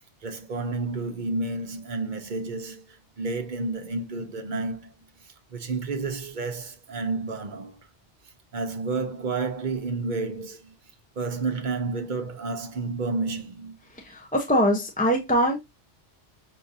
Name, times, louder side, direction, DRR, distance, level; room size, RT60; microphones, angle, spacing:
voice 1, 0.0-5.1 5.5-7.8 8.5-10.8 11.2-13.8, right 3 dB, 50° right, 0.9 m, -31 dB
voice 2, 14.0-15.6, equal, 10° left, 0.6 m, -23 dB
6.4 x 2.6 x 2.6 m
omnidirectional pair, 1.2 m